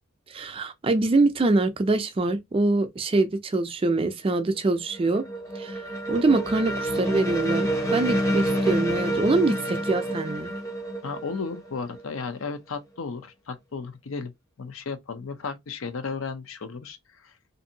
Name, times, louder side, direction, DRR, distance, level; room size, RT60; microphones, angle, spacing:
voice 1, 0.3-5.2 5.6-5.8 6.1-10.5, right 2 dB, 25° right, 0.3 m, -24 dB
sound 1, 4.6-12.3, right 1 dB, 15° left, 0.6 m, -28 dB
voice 2, 11.0-14.3 14.6-17.3, left 4 dB, 70° left, 0.6 m, -34 dB
2.6 x 2.5 x 2.7 m
head